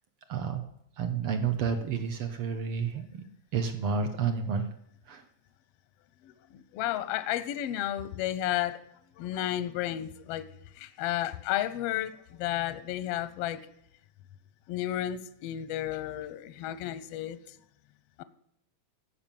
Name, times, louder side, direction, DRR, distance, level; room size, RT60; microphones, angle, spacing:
voice 1, 0.3-0.7 1.0-3.3 3.5-4.7 5.1-5.2, right 6 dB, 65° right, 8 dB, 1.4 m, -30 dB
voice 2, 6.2-8.8 9.2-10.4 10.8-13.6 14.7-17.4 18.2-18.3, left 13 dB, 75° left, 14 dB, 1.4 m, -32 dB
14.0 x 5.7 x 9.0 m, 0.75 s
omnidirectional pair, 3.3 m